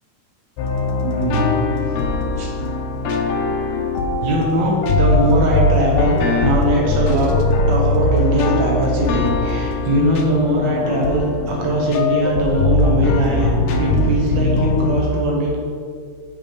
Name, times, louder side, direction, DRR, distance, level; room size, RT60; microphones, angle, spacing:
sound 1, 0.6-15.0, left 2 dB, 85° left, 1.6 m, -20 dB
voice 1, 1.0-1.5 2.4-2.5 4.2-15.6, right 1 dB, 65° right, -3 dB, 1.2 m, -20 dB
7.2 x 5.5 x 5.1 m, 2.1 s
omnidirectional pair, 4.0 m